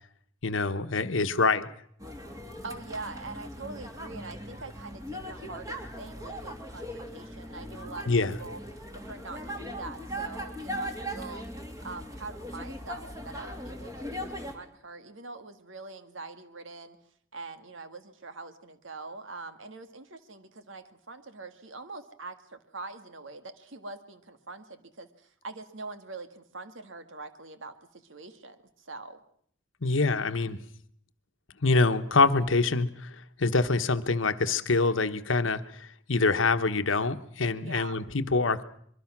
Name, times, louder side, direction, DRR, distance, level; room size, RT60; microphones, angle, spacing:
voice 1, 0.4-1.7 8.1-8.4 29.8-30.6 31.6-38.6, left 3 dB, 70° left, 10 dB, 1.2 m, -25 dB
sound 1, 2.0-14.5, equal, 15° right, 2.8 m, -39 dB
voice 2, 2.6-8.1 8.4-8.6 8.9-11.4 11.8-17.0 17.3-29.2 37.6-38.0, right 3 dB, 70° right, 9 dB, 1.8 m, -43 dB
25.0 x 23.0 x 6.1 m, 0.63 s
head